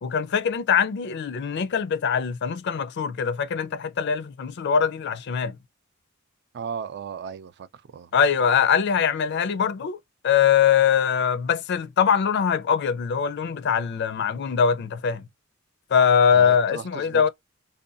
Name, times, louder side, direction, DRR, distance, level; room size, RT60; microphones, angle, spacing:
voice 1, 0.0-5.6 8.1-10.0 10.2-15.2 15.9-17.3, left 7 dB, 55° left, 0.4 m, -22 dB
voice 2, 6.5-8.1 16.3-17.3, right 6 dB, 55° right, 0.4 m, -36 dB
2.7 x 2.2 x 2.4 m
head